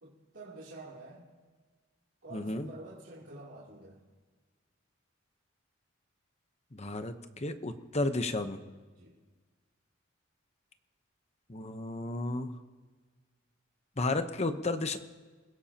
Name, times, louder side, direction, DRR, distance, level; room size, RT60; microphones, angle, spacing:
voice 1, 0.0-1.2 2.2-4.0 8.9-9.2, right 2 dB, 65° right, -8 dB, 3.2 m, -48 dB
voice 2, 2.3-2.7 6.7-8.6 11.5-12.5 14.0-15.0, left 2 dB, 35° left, 8 dB, 0.9 m, -33 dB
28.5 x 16.5 x 2.9 m, 1.4 s
head